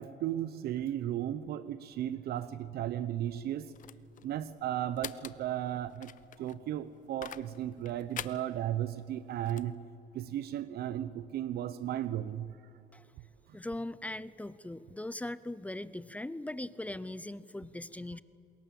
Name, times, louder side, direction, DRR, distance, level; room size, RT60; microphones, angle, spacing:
voice 1, 0.0-3.7 4.2-6.1 6.4-9.7 10.1-12.6, right 11 dB, 70° right, 14 dB, 0.8 m, -35 dB
sound 1, 3.2-9.7, left 10 dB, 50° left, 0.8 m, -47 dB
voice 2, 13.5-18.2, left 1 dB, 10° left, 17 dB, 0.6 m, -40 dB
28.0 x 21.5 x 7.7 m, 2.6 s
cardioid pair, 110°, 17 cm